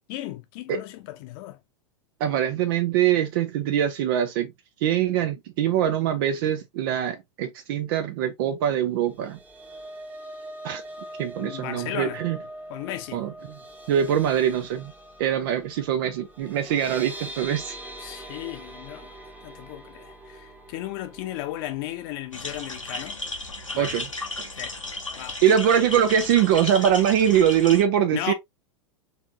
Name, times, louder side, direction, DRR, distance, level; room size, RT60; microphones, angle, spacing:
voice 1, 0.1-1.6 11.4-12.2 12.7-13.2 18.0-19.2 19.4-23.2 23.7-23.9 24.5-24.8 25.2-25.4 28.1-28.3, left 14 dB, 45° left, 0.8 m, -35 dB
voice 2, 2.2-4.5 4.8-9.4 10.6-10.8 11.2-12.4 13.1-13.3 13.9-14.9 15.2-17.7 23.8-24.1 25.4-28.3, right 9 dB, 45° right, 0.5 m, -23 dB
sound 1, 9.0-23.3 23.6-23.8 24.1-24.3, right 1 dB, 10° right, 1.0 m, -43 dB
sound 2, 22.3-27.8, left 2 dB, 90° left, 1.1 m, -35 dB
4.2 x 3.5 x 2.5 m
figure-of-eight pair, 90°, 16 cm